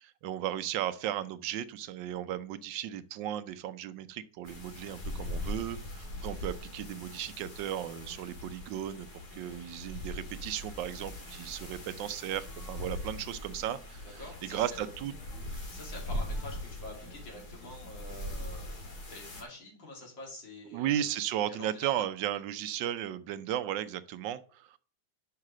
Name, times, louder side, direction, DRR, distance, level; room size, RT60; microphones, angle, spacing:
voice 1, 0.0-14.0 14.5-15.1 15.5-15.6 20.7-24.8, right 11 dB, 75° right, 12 dB, 1.3 m, -35 dB
sound 1, 4.4-19.4, left 1 dB, 50° left, 2.3 m, -41 dB
voice 2, 14.0-14.8 15.7-21.1 21.5-22.1, left 2 dB, 70° left, -1 dB, 3.3 m, -47 dB
5.7 x 5.7 x 6.1 m, 0.41 s
omnidirectional pair, 2.2 m